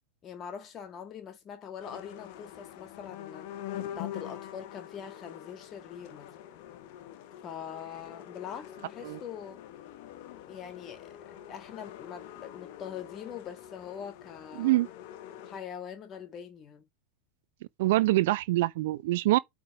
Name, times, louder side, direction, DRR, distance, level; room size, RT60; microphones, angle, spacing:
voice 1, 0.2-3.5 4.0-6.3 7.4-9.6 10.5-14.8 15.5-16.9, left 8 dB, 30° left, 1.8 m, -43 dB
sound 1, 1.8-15.6, left 11 dB, 45° left, 1.2 m, -45 dB
voice 2, 17.8-19.4, right 17 dB, 50° right, 0.5 m, -25 dB
8.7 x 3.6 x 4.7 m
figure-of-eight pair, 90°, 0 cm